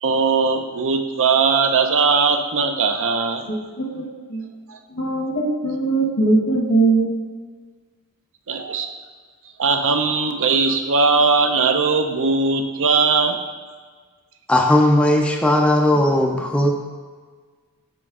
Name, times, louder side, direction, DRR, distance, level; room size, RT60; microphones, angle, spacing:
voice 1, 0.0-3.5 4.7-4.8 8.5-8.9 9.6-13.4, right 4 dB, 60° right, 6 dB, 0.5 m, -19 dB
voice 2, 3.5-4.0 4.3-4.4 4.9-7.2, right 3 dB, 65° left, 0 dB, 1.3 m, -20 dB
voice 3, 14.5-16.7, left 1 dB, 5° left, 0 dB, 0.4 m, -17 dB
6.3 x 5.4 x 3.6 m, 1.5 s
head